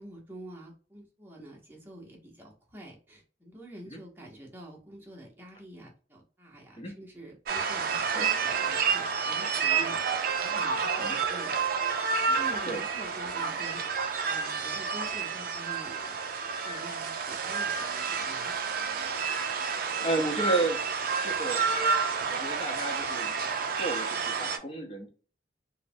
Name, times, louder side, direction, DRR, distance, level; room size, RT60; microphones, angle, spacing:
voice 1, 0.0-10.0 10.4-11.9 12.2-13.8 14.2-16.2 16.6-18.6, right 1 dB, 10° right, -3 dB, 0.8 m, -47 dB
sound 1, 7.5-24.6, right 5 dB, 50° right, 0.4 m, -30 dB
voice 2, 20.0-20.8 21.2-21.6 22.3-23.4 23.8-25.1, right 2 dB, 30° left, 1 dB, 0.7 m, -32 dB
3.2 x 2.1 x 2.6 m, 0.38 s
head